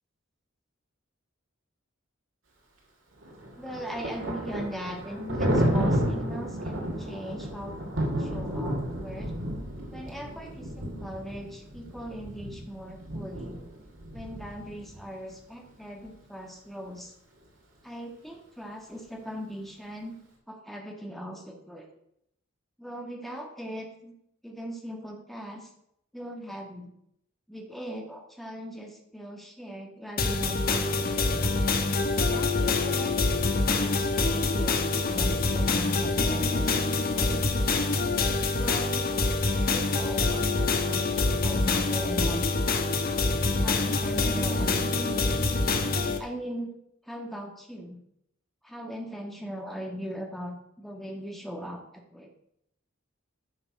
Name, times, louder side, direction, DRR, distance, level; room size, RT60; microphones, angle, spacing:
Thunder, 3.2-15.0, equal, 80° right, 2.4 m, -32 dB
voice 1, 3.6-9.3 9.9-13.6 14.1-17.1 17.8-20.2 20.5-21.9 22.8-24.1 24.4-25.7 26.1-26.9 27.5-31.6 32.2-33.3 33.5-36.7 37.2-37.7 38.5-42.8 43.6-45.4 46.2-46.7 47.1-48.0 48.6-51.8 52.1-52.3, equal, ahead, 1 dB, 1.6 m, -39 dB
sound 1, 30.2-46.2, left 3 dB, 50° left, 1.1 m, -26 dB
11.5 x 6.1 x 5.3 m, 0.76 s
head